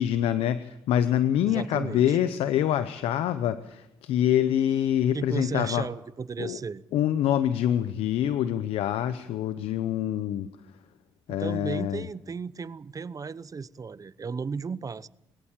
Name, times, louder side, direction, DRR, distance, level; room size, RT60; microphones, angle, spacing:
voice 1, 0.0-5.9 6.4-6.6 6.9-10.5 11.3-12.1, left 10 dB, 85° left, 0.8 m, -25 dB
voice 2, 1.4-2.2 5.1-6.8 11.3-15.1, right 5 dB, 35° right, 0.8 m, -34 dB
22.5 x 17.0 x 7.4 m
supercardioid pair, 65°, 10 cm